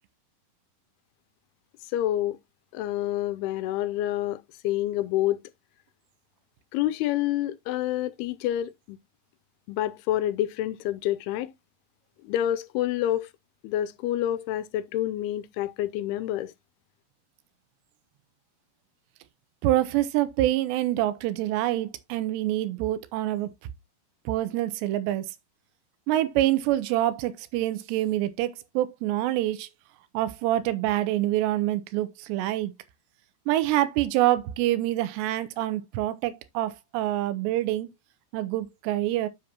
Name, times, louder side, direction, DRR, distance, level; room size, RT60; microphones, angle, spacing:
voice 1, 1.9-2.4 2.7-5.4 6.7-9.0 9.7-11.5 12.2-13.3 13.6-16.5, left 13 dB, 80° left, 2.4 m, -28 dB
voice 2, 19.6-23.5 24.3-25.3 26.1-29.7 30.1-32.7 33.5-37.9 38.3-39.3, right 14 dB, 90° right, 2.9 m, -26 dB
7.6 x 7.1 x 2.9 m
omnidirectional pair, 4.8 m